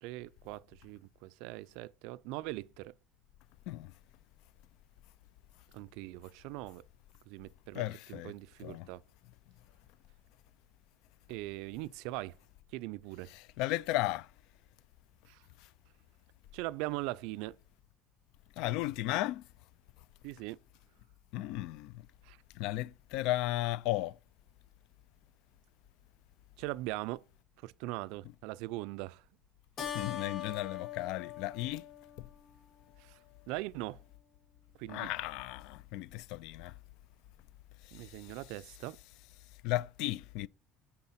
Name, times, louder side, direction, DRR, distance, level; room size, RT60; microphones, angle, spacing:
voice 1, 0.0-2.9 5.7-6.8 7.3-7.8 8.1-9.0 11.3-12.4 12.7-13.3 15.3-15.4 16.5-17.6 20.2-20.6 22.2-22.4 26.6-27.2 27.6-29.2 33.0-33.2 33.5-34.0 34.8-35.1 37.9-39.0, right 19 dB, 75° right, 0.4 m, -41 dB
voice 2, 7.7-8.3 8.6-8.9 13.3-14.3 18.6-19.4 21.3-21.9 22.6-24.2 29.9-31.8 32.2-32.3 34.9-36.7 38.0-38.1 39.6-40.5, left 16 dB, 70° left, 0.3 m, -35 dB
Keyboard (musical), 29.8-32.7, left 10 dB, 35° left, 1.3 m, -42 dB
9.6 x 3.8 x 4.2 m
cardioid pair, 140°, 0 cm